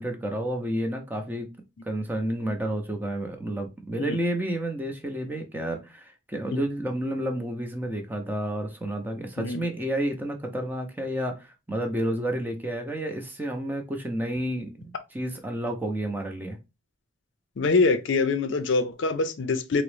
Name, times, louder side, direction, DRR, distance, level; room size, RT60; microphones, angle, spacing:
voice 1, 0.0-1.5 1.9-16.6, right 1 dB, 10° right, 0.5 m, -30 dB
voice 2, 9.4-9.7 17.6-19.8, left 3 dB, 65° left, 0.4 m, -24 dB
3.7 x 2.0 x 3.1 m
head